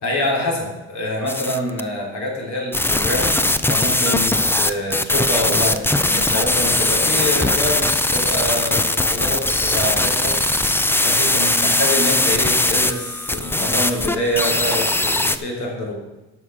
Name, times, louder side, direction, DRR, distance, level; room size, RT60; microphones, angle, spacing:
voice 1, 0.0-10.4 11.0-16.0, left 1 dB, 65° left, -1 dB, 3.5 m, -26 dB
sound 1, 1.3-1.8 2.7-15.4, left 2 dB, 5° left, 0.5 m, -20 dB
11.0 x 6.1 x 6.4 m, 1.1 s
cardioid pair, 90°, 30 cm